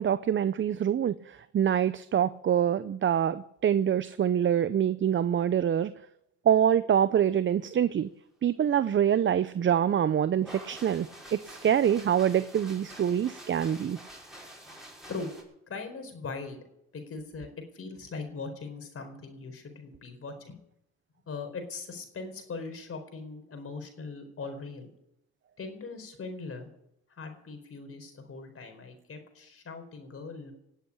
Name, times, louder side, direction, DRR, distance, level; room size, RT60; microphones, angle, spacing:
voice 1, 0.0-5.9 6.4-8.1 8.4-14.0, right 9 dB, 40° right, 14 dB, 0.6 m, -25 dB
sound 1, 10.4-15.4, right 1 dB, ahead, 5.8 m, -47 dB
voice 2, 15.7-16.6 16.9-17.5 17.7-20.6 21.3-24.9 25.6-26.7 27.2-30.5, left 4 dB, 50° left, 6 dB, 4.6 m, -40 dB
18.5 x 8.1 x 8.7 m, 0.78 s
cardioid pair, 90°, 30 cm